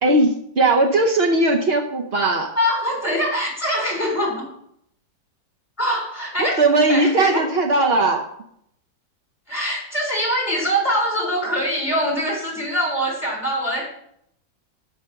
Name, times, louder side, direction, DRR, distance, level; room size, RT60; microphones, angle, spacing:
voice 1, 0.0-2.6 6.6-8.3, right 2 dB, 85° right, 4 dB, 0.5 m, -18 dB
voice 2, 2.6-4.4 5.8-6.6 6.9-7.4 9.5-13.9, equal, 5° left, -3 dB, 3.7 m, -23 dB
6.7 x 6.1 x 7.0 m, 0.72 s
omnidirectional pair, 2.1 m